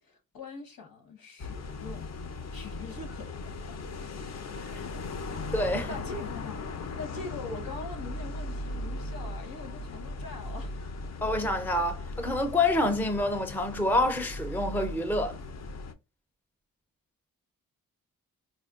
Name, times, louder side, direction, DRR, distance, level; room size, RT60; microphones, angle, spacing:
voice 1, 0.0-2.1 2.5-3.8 4.6-5.1 5.8-6.6 6.9-10.8, left 4 dB, 75° left, 1.2 m, -43 dB
sound 1, 1.4-15.9, left 2 dB, 50° left, 0.5 m, -38 dB
voice 2, 5.5-5.9 11.2-15.4, left 1 dB, 5° left, 0.5 m, -27 dB
4.3 x 2.2 x 2.4 m
cardioid pair, 95°, 35 cm